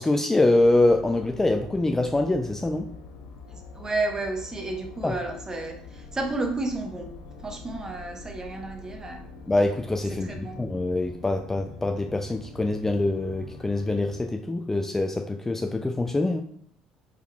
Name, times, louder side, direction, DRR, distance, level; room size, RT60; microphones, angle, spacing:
voice 1, 0.0-2.9 5.0-5.1 9.5-16.4, left 2 dB, 15° left, 4 dB, 0.3 m, -24 dB
sound 1, 0.5-14.3, left 3 dB, 70° left, 0.5 m, -44 dB
voice 2, 3.5-7.1 7.4-9.2 10.1-10.6, right 2 dB, 20° right, 3 dB, 0.9 m, -32 dB
4.2 x 3.7 x 2.3 m, 0.62 s
hypercardioid pair, 60°, 3 cm